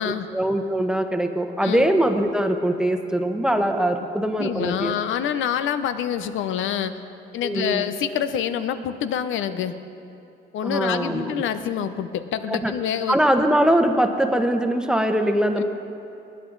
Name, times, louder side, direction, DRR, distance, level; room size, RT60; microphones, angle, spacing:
voice 1, 0.0-4.9 7.4-7.9 10.6-11.5 12.5-12.7 13.1-15.6, right 1 dB, 5° right, 6 dB, 1.0 m, -22 dB
voice 2, 4.4-6.9 7.3-9.8 10.5-13.2 15.6-15.7, left 9 dB, 80° left, 11 dB, 0.7 m, -26 dB
20.0 x 9.5 x 3.9 m, 2.8 s
cardioid pair, 90°, 20 cm